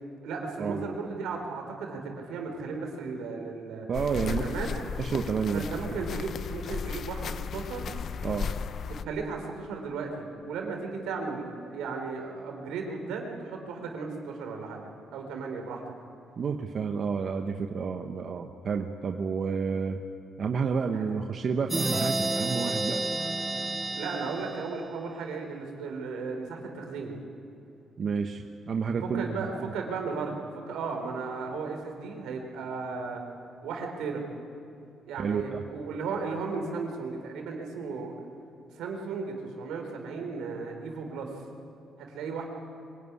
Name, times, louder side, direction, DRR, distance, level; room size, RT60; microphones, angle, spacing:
voice 1, 0.2-3.9 4.2-4.7 5.5-7.9 9.0-15.8 20.9-21.1 24.0-27.2 29.0-33.2 33.6-34.2 35.0-38.1 38.7-41.4 42.0-42.4, right 4 dB, 90° right, 3 dB, 4.2 m, -35 dB
sound 1, 3.9-9.1, left 6 dB, 60° left, 0.8 m, -35 dB
voice 2, 3.9-4.4 5.0-5.6 8.2-8.5 16.4-20.0 20.4-23.0 28.0-29.7 35.2-35.6, right 5 dB, 50° right, 4 dB, 1.2 m, -30 dB
sound 2, 21.7-25.3, right 2 dB, 15° right, 0.6 m, -31 dB
24.0 x 18.0 x 9.8 m, 2.6 s
cardioid pair, 90°, 0 cm